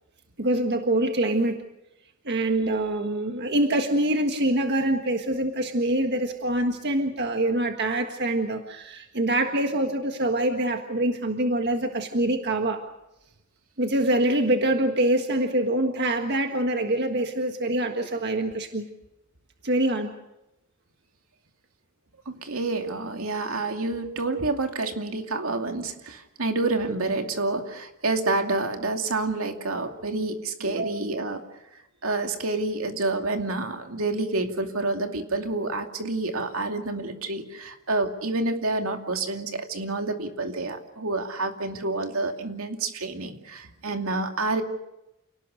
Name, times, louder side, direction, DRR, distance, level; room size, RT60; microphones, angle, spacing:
voice 1, 0.4-1.6 2.2-12.8 13.8-18.8 19.6-20.1 30.6-30.9, right 1 dB, 55° right, 5 dB, 1.6 m, -25 dB
voice 2, 22.3-31.4 31.7-44.6, right 2 dB, 80° right, 5 dB, 2.6 m, -28 dB
29.0 x 19.0 x 6.5 m, 0.93 s
head